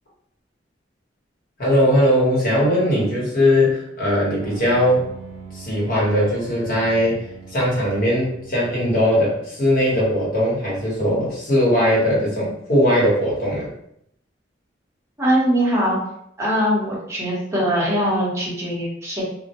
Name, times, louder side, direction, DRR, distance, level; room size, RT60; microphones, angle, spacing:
voice 1, 1.6-5.1 5.5-7.2 7.5-13.7, equal, 50° left, -5 dB, 1.0 m, -19 dB
sound 1, 4.4-9.6, right 5 dB, 75° right, 0.5 m, -42 dB
voice 2, 15.2-16.0 16.4-19.2, equal, 15° right, -7 dB, 0.8 m, -21 dB
2.1 x 2.1 x 2.8 m, 0.73 s
head